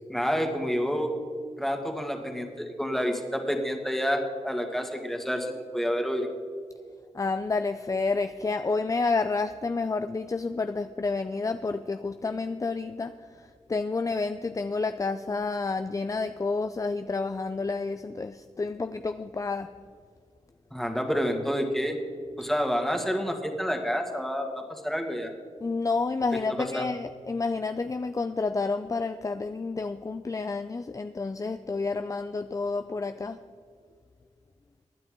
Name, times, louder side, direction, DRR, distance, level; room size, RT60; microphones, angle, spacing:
voice 1, 0.1-1.1 1.6-6.3 20.7-22.0 22.4-25.3 26.6-26.9, equal, ahead, 3 dB, 2.1 m, -29 dB
voice 2, 7.1-13.1 13.7-19.7 25.6-33.4, left 3 dB, 25° left, 10 dB, 0.5 m, -29 dB
23.5 x 9.7 x 3.8 m, 2.1 s
cardioid pair, 70°, 13 cm